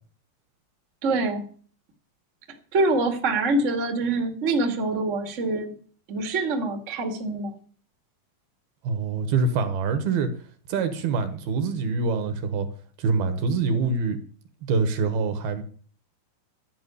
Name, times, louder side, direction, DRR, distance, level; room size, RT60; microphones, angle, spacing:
voice 1, 1.0-1.4 2.7-5.7 6.1-7.5, right 2 dB, 35° right, 1.1 m, -25 dB
voice 2, 8.8-10.3 10.7-12.7 13.0-14.2 14.7-15.6, right 4 dB, 65° right, 2.9 m, -25 dB
13.0 x 6.2 x 9.4 m
omnidirectional pair, 5.1 m